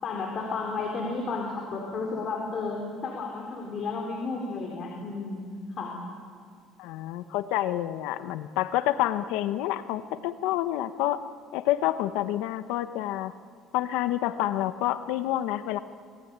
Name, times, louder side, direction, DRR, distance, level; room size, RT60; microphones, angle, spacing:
voice 1, 0.0-5.5 5.8-6.0, left 4 dB, 40° left, -1 dB, 4.1 m, -32 dB
voice 2, 6.8-11.2 11.5-13.3 13.7-15.8, left 13 dB, 85° left, 11 dB, 1.0 m, -28 dB
27.0 x 19.5 x 9.6 m, 2.1 s
cardioid pair, 145°, 0 cm